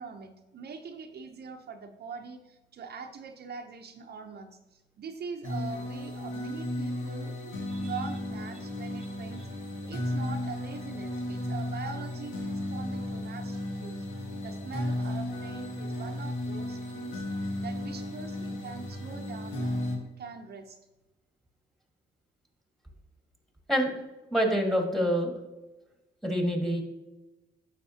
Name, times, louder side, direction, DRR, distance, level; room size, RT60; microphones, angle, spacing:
voice 1, 0.0-9.5 9.8-14.1 14.4-17.3 17.6-19.9 20.2-20.8, right 5 dB, 55° right, 5 dB, 0.7 m, -43 dB
sound 1, 5.4-20.0, left 1 dB, 85° left, 1.7 m, -34 dB
voice 2, 24.3-25.4 26.2-26.8, equal, ahead, 2 dB, 1.6 m, -26 dB
9.2 x 6.5 x 2.8 m, 1.1 s
cardioid pair, 90°, 20 cm